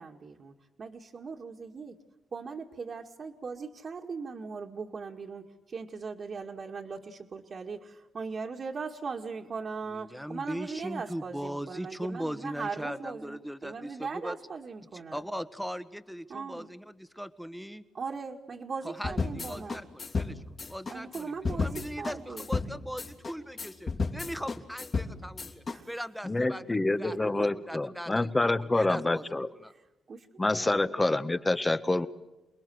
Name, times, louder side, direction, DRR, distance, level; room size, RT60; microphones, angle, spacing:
voice 1, 0.0-2.0 2.3-15.2 16.3-16.7 17.9-19.8 20.9-22.5 25.7-25.9 26.9-27.5 29.7-30.3 30.5-30.8, right 5 dB, 45° right, -1 dB, 2.2 m, -39 dB
voice 2, 9.9-14.4 15.1-17.8 18.8-20.4 20.7-29.7, equal, ahead, 13 dB, 1.5 m, -39 dB
sound 1, 19.0-25.8, left 4 dB, 40° left, 3.0 m, -33 dB
voice 3, 26.2-29.5 30.4-32.1, left 2 dB, 15° left, 13 dB, 1.4 m, -27 dB
28.5 x 21.0 x 8.0 m, 1.0 s
cardioid pair, 100°, 0 cm